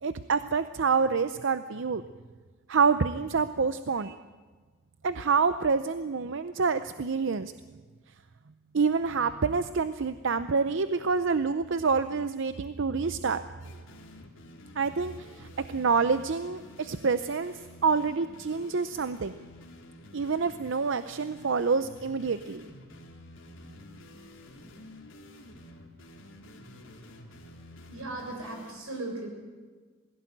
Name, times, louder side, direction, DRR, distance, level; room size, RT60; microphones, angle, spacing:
voice 1, 0.0-2.0 2.7-4.2 5.0-7.5 8.7-13.4 14.8-17.5 17.8-19.3 20.1-22.7, right 5 dB, 60° right, 12 dB, 0.6 m, -27 dB
sound 1, 13.6-28.7, left 1 dB, 65° left, 3.2 m, -50 dB
voice 2, 27.9-29.3, right 2 dB, 85° right, 1 dB, 6.9 m, -37 dB
21.0 x 16.0 x 9.1 m, 1.4 s
head